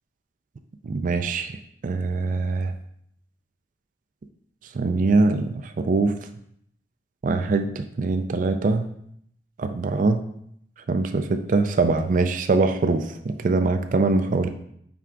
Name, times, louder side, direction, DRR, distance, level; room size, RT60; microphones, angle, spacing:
voice 1, 0.8-1.5 1.8-2.7 4.7-6.1 7.2-8.9 9.6-10.2 10.9-14.5, right 3 dB, 45° right, 8 dB, 0.4 m, -23 dB
5.8 x 4.9 x 3.5 m, 0.70 s
head